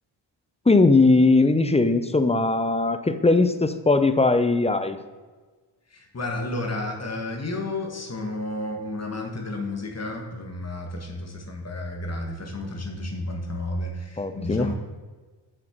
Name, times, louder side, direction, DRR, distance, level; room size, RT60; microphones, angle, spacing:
voice 1, 0.7-5.0 14.2-14.7, left 3 dB, 15° left, 10 dB, 0.5 m, -19 dB
voice 2, 5.9-14.7, left 2 dB, 35° left, 2 dB, 1.6 m, -32 dB
7.7 x 6.2 x 4.5 m, 1.4 s
cardioid pair, 80°, 46 cm